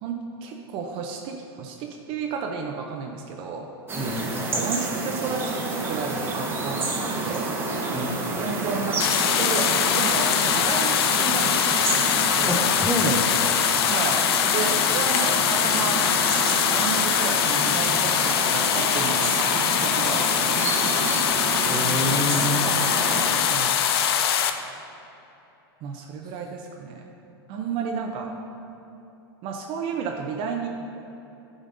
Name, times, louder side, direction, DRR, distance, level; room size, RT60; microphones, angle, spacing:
voice 1, 0.0-3.7 4.5-7.6 8.4-9.0 9.4-9.7 10.0-12.6 13.8-14.2 14.5-16.0 16.7-19.3 19.8-21.0 23.3-23.8 25.8-27.0 27.5-28.3 29.4-30.7, right 5 dB, 45° right, 2 dB, 0.6 m, -32 dB
voice 2, 3.9-4.6 7.9-8.2 12.5-13.5 21.7-22.7, equal, 5° left, -4 dB, 0.6 m, -27 dB
sound 1, 3.9-23.3, right 2 dB, 20° right, 1.0 m, -29 dB
sound 2, 9.0-24.5, left 9 dB, 75° left, 0.4 m, -22 dB
9.7 x 5.1 x 2.6 m, 3.0 s
hypercardioid pair, 120°, 13 cm